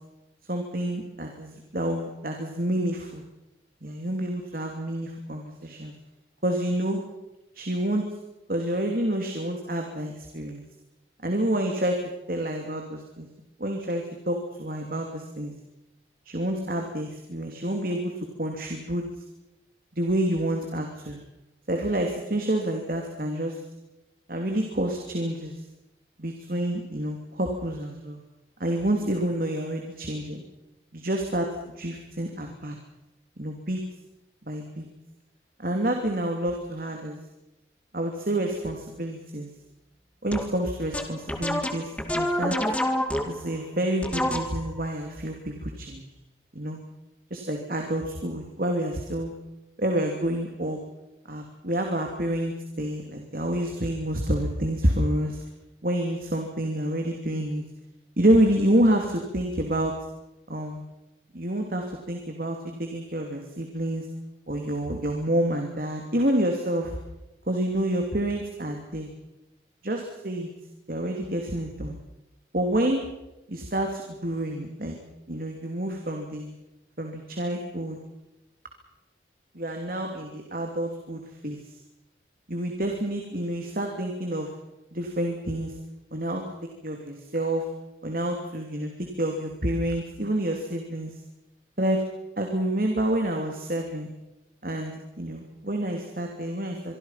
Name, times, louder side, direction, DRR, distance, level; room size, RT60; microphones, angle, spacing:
voice 1, 0.5-3.2 3.8-5.9 6.4-7.0 7.5-8.0 8.5-10.6 11.2-13.3 13.6-15.5 16.2-19.0 19.9-21.2 21.7-23.6 24.3-25.6 26.2-28.2 28.6-30.4 30.9-31.5 31.8-32.7 33.4-33.8 34.4-34.9 35.6-37.2 37.9-39.5 40.2-42.6 43.2-46.0 46.5-46.8 47.3-49.3 49.8-50.8 51.3-55.4 55.8-57.6 58.2-59.9 60.5-60.8 61.3-64.1 64.5-66.9 67.5-69.1 69.8-70.5 70.9-72.0 72.5-73.0 73.5-74.9 75.3-76.5 77.0-78.0 79.5-81.6 82.5-84.5 84.9-85.7 86.1-86.4 86.8-87.7 88.0-91.1 91.8-92.0 92.4-94.1 94.6-96.9, right 1 dB, 50° right, 3 dB, 3.0 m, -28 dB
sound 1, 40.3-40.6 40.9-43.5 44.0-44.8, left 1 dB, 5° left, 2.1 m, -27 dB
24.5 x 24.5 x 5.9 m, 0.95 s
head